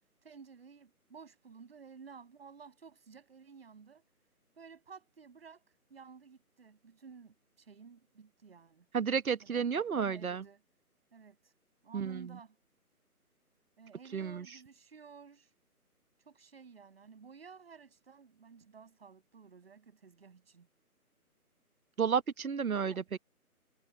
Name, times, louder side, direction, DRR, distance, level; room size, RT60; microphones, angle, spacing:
voice 1, 0.2-4.0 4.5-5.6 5.9-8.9 9.4-10.6 11.1-11.5 11.8-12.6 13.8-15.5 16.2-20.7 22.9-23.0, right 5 dB, 40° right, 7.7 m, -54 dB
voice 2, 8.9-10.4 11.9-12.3 14.1-14.4 22.0-23.2, right 6 dB, 65° right, 1.1 m, -32 dB
figure-of-eight pair, 170°, 45 cm